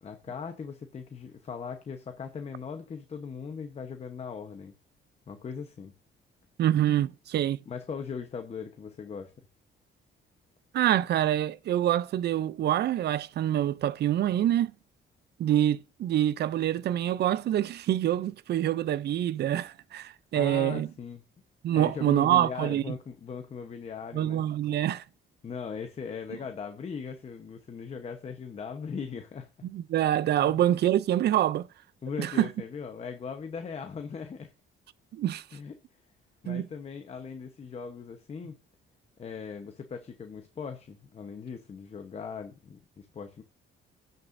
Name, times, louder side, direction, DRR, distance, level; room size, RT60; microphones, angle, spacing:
voice 1, 0.0-4.7 5.3-5.9 7.7-9.3 20.3-21.2 21.7-24.4 25.4-29.5 30.4-30.6 32.0-34.5 35.5-35.7 36.4-38.6 39.2-43.4, left 6 dB, 30° left, 0.9 m, -39 dB
voice 2, 6.6-7.6 10.7-14.7 15.4-20.9 21.6-22.8 24.1-25.0 29.6-31.7 32.2-32.5 35.1-35.4 36.5-36.7, right 12 dB, 55° right, 0.5 m, -26 dB
16.5 x 6.7 x 2.6 m
cardioid pair, 160°, 21 cm